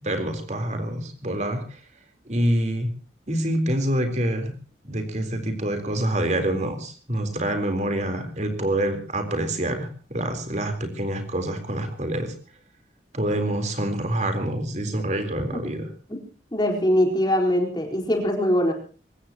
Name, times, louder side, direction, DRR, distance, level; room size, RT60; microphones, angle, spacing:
voice 1, 0.0-1.8 2.3-2.9 3.3-4.5 4.9-12.3 13.1-15.9, right 1 dB, 40° right, 6 dB, 3.9 m, -26 dB
voice 2, 16.5-18.7, equal, 25° left, 1 dB, 4.3 m, -22 dB
24.0 x 19.0 x 3.0 m, 0.38 s
head